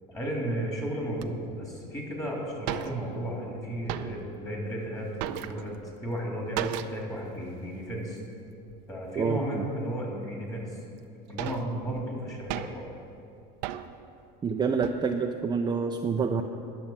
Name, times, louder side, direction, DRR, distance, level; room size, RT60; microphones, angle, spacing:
voice 1, 0.1-5.7 6.0-8.2 8.9-10.8 11.3-12.9, right 1 dB, 15° left, -2 dB, 3.3 m, -34 dB
sound 1, 1.2-1.3 2.0-2.1 2.3-2.4 2.6-3.4 3.7-4.4 4.8-5.9 6.6-7.1 7.4-7.5 7.9-8.1 8.7-9.2 9.7-9.8 10.5-10.6 11.0-13.0 13.6-14.1 14.6-15.0, right 11 dB, 85° right, 0.6 m, -36 dB
voice 2, 9.2-9.6 14.4-16.4, right 5 dB, 20° right, 3 dB, 0.5 m, -27 dB
10.5 x 6.9 x 8.3 m, 2.5 s
supercardioid pair, 115°, 21 cm